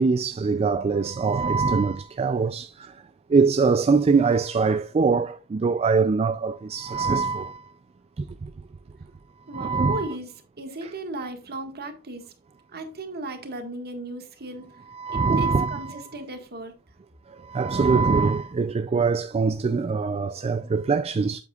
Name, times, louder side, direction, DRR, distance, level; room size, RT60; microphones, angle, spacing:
voice 1, 0.0-2.9 3.3-7.7 8.2-8.3 9.5-10.1 14.9-16.0 17.4-21.4, right 4 dB, 25° right, 0.3 m, -23 dB
voice 2, 9.5-12.3 12.7-14.8 15.1-16.7, right 2 dB, 45° right, 1.7 m, -36 dB
8.2 x 7.8 x 2.4 m
head